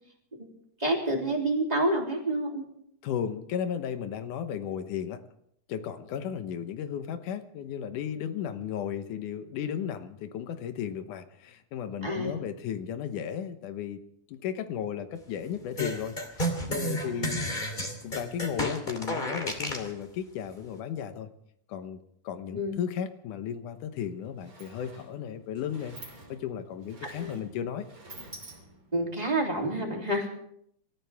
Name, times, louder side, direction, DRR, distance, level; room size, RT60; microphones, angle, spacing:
voice 1, 0.8-2.7 12.0-12.3 17.0-17.4 22.5-22.8 27.0-27.4 28.9-30.3, right 1 dB, 15° right, 0 dB, 3.1 m, -28 dB
voice 2, 3.0-5.2 5.7-14.0 14.3-17.4 18.0-21.3 21.7-22.0 22.2-27.9, left 8 dB, 90° left, 9 dB, 2.6 m, -35 dB
sound 1, 15.8-19.9, equal, 15° left, 2.4 m, -31 dB
Sliding door, 23.7-23.8 24.1-29.0, right 2 dB, 30° right, 3.2 m, -49 dB
27.5 x 14.0 x 3.5 m, 0.71 s
omnidirectional pair, 3.5 m